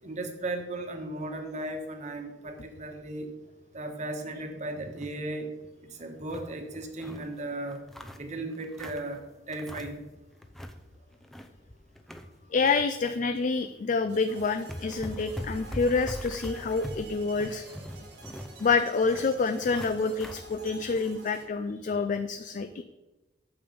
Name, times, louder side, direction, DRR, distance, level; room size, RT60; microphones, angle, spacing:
voice 1, 0.0-3.3 3.7-5.5 5.8-7.8 8.2-10.0, right 2 dB, 40° right, 4 dB, 1.4 m, -36 dB
sound 1, 4.8-5.2 5.6-5.7 6.0-7.3 7.7-9.1 9.5-10.1 10.4-10.8 11.1-12.8 13.1-13.3 14.0-14.1 14.4-20.4, equal, ahead, 0.6 m, -42 dB
voice 2, 12.5-17.6 18.6-22.8, left 4 dB, 45° left, 9 dB, 0.4 m, -27 dB
sound 2, 14.1-21.4, right 2 dB, 80° right, 2.4 m, -49 dB
8.8 x 7.0 x 5.2 m, 1.1 s
head